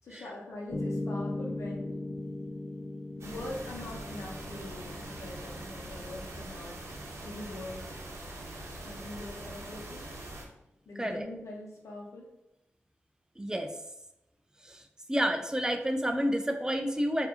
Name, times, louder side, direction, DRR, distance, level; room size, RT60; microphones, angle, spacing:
voice 1, 0.0-1.9 3.2-6.8 7.2-7.9 8.8-10.0 10.9-12.3, left 1 dB, 90° left, -1 dB, 1.0 m, -43 dB
Piano, 0.7-8.8, left 2 dB, 50° left, 0.6 m, -39 dB
sound 1, 3.2-10.4, right 1 dB, 70° right, 0.8 m, -43 dB
voice 2, 13.4-13.7 14.6-14.8 15.1-17.3, equal, 15° right, 5 dB, 0.5 m, -29 dB
4.4 x 2.7 x 2.7 m, 0.90 s
cardioid pair, 60°, 5 cm